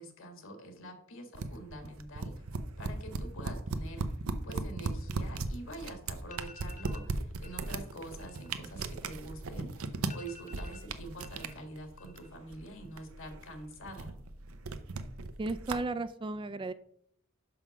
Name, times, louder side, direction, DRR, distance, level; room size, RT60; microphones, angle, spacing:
voice 1, 0.0-2.4 2.8-4.1 4.4-14.1, right 1 dB, 65° left, 6 dB, 1.5 m, -46 dB
sound 1, 1.3-15.7, right 3 dB, 85° right, 0.7 m, -38 dB
sound 2, 6.2-7.1 7.4-7.7 8.1-9.5 9.8-9.9 10.1-11.5 11.8-12.4 12.7-13.3, left 3 dB, 35° left, 1.1 m, -53 dB
voice 2, 15.4-16.7, right 2 dB, 25° right, 13 dB, 0.3 m, -34 dB
6.0 x 5.6 x 5.8 m, 0.67 s
head